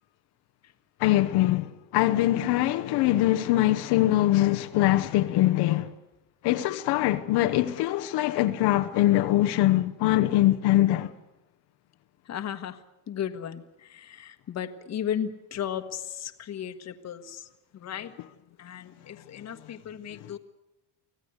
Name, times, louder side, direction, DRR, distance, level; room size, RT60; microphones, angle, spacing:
voice 1, 1.0-5.9 6.4-11.1 18.2-18.3, left 15 dB, 80° left, 1.1 m, -23 dB
voice 2, 12.3-12.8 13.1-13.6 13.9-17.4 17.8-18.1 18.6-20.4, left 9 dB, 40° left, 1.5 m, -35 dB
25.0 x 16.0 x 8.2 m
cardioid pair, 140°, 39 cm